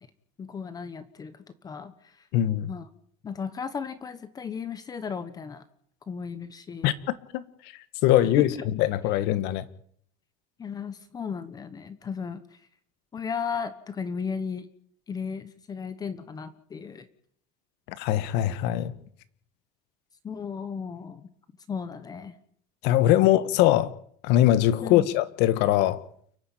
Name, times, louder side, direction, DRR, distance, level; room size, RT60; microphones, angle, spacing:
voice 1, 0.4-1.4 1.6-1.9 2.7-2.8 3.2-5.6 6.1-6.9 8.4-8.5 10.6-12.4 13.1-14.7 15.1-17.1 20.2-21.3 21.7-22.3 23.2-23.3 24.8-25.1, left 6 dB, 20° left, 1.2 m, -35 dB
voice 2, 2.3-2.7 6.8-6.9 7.3-7.4 8.0-9.7 18.0-18.9 22.8-23.9 24.2-26.0, left 13 dB, 60° left, 1.4 m, -22 dB
30.0 x 10.0 x 9.0 m
cardioid pair, 165°, 19 cm